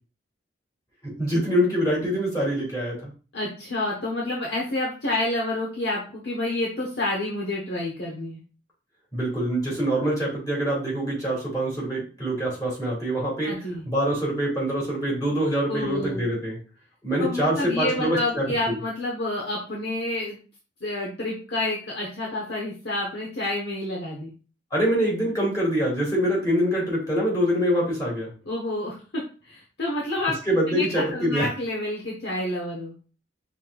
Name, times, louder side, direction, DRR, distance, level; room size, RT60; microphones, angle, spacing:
voice 1, 1.0-3.1 9.1-13.5 13.9-16.6 17.0-18.8 24.7-28.3 30.4-31.5, equal, 20° left, -4 dB, 1.7 m, -25 dB
voice 2, 3.3-8.4 13.4-13.8 15.7-16.2 17.2-20.4 20.8-24.3 28.5-30.4 30.7-32.9, left 2 dB, 65° left, -4 dB, 1.0 m, -29 dB
5.6 x 3.2 x 2.3 m, 0.36 s
head